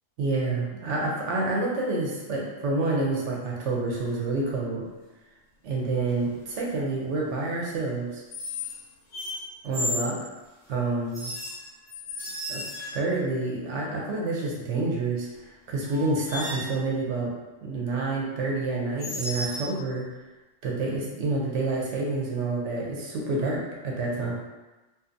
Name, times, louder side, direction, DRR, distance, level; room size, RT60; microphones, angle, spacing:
voice 1, 0.2-4.8 5.6-8.2 9.6-10.2 10.7-11.3 12.5-12.6 12.9-17.3 17.6-20.1 20.6-24.3, right 3 dB, 70° right, -3 dB, 0.9 m, -28 dB
sound 1, 4.0-4.3 6.1-6.4 8.3-8.8 9.1-10.2 11.1-13.2 15.3-15.4 15.9-16.8 19.0-19.7, left 2 dB, 20° left, 0.8 m, -34 dB
2.6 x 2.2 x 2.5 m, 1.1 s
omnidirectional pair, 1.3 m